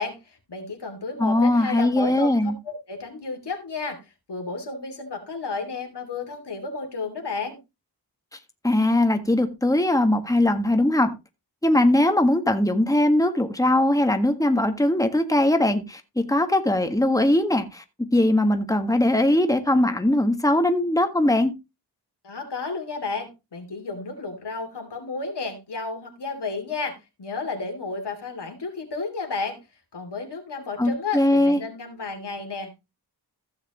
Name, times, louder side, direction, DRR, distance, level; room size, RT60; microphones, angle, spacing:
voice 1, 0.0-7.6 22.2-29.6 29.9-32.7, left 4 dB, 85° left, 4 dB, 2.9 m, -32 dB
voice 2, 1.2-2.5 8.6-11.1 11.6-17.8 18.1-21.5 30.8-31.6, left 1 dB, 10° left, 7 dB, 1.6 m, -20 dB
15.0 x 6.5 x 3.0 m, 0.24 s
cardioid pair, 45°, 40 cm